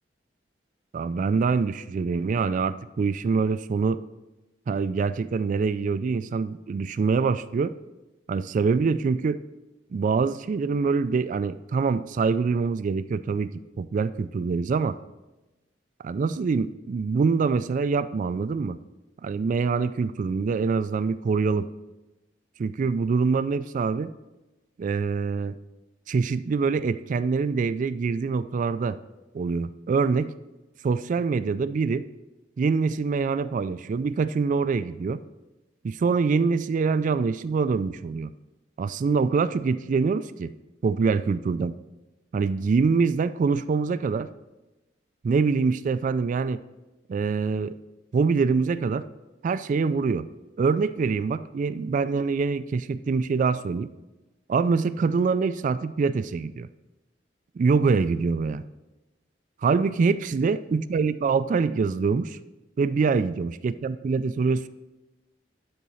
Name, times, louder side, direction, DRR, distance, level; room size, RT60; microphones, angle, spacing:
voice 1, 0.9-4.0 4.7-7.7 8.3-9.4 9.9-13.5 13.8-15.0 16.0-18.8 19.2-21.7 22.6-24.1 24.8-25.5 26.1-29.0 29.3-30.3 30.8-32.1 32.6-35.2 35.8-38.3 38.8-40.5 40.8-41.7 42.3-44.3 45.2-46.6 47.1-47.8 48.1-49.1 49.4-50.3 50.6-53.9 54.5-56.7 57.6-58.6 59.6-62.4 62.8-64.7, right 4 dB, 45° right, 14 dB, 0.3 m, -24 dB
12.0 x 4.1 x 5.5 m, 1.1 s
head